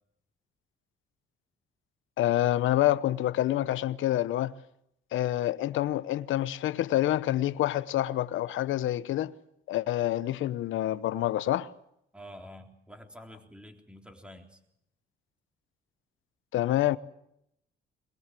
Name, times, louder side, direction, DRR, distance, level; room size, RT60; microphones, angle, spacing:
voice 1, 2.2-4.5 5.1-9.3 9.7-11.7 16.5-17.0, left 14 dB, 80° left, 1.0 m, -27 dB
voice 2, 12.1-14.6, equal, 5° right, 3.7 m, -48 dB
22.0 x 21.5 x 7.7 m
cardioid pair, 90°, 20 cm